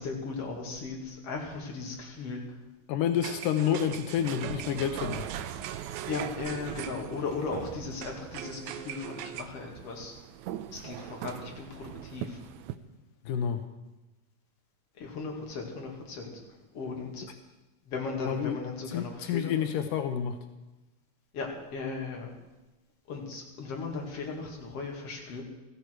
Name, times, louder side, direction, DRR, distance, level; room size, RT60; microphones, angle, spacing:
voice 1, 0.0-2.4 6.1-10.1 10.7-12.4 15.0-16.4 16.7-17.2 17.9-19.6 21.3-22.3 23.1-25.4, left 4 dB, 50° left, 0 dB, 3.1 m, -37 dB
voice 2, 2.9-5.2 13.3-13.6 18.3-18.6 18.9-20.4, left 9 dB, 85° left, 7 dB, 2.4 m, -29 dB
sound 1, 3.2-12.8, right 11 dB, 80° right, 1.8 m, -40 dB
16.0 x 14.5 x 4.7 m, 1.1 s
omnidirectional pair, 3.7 m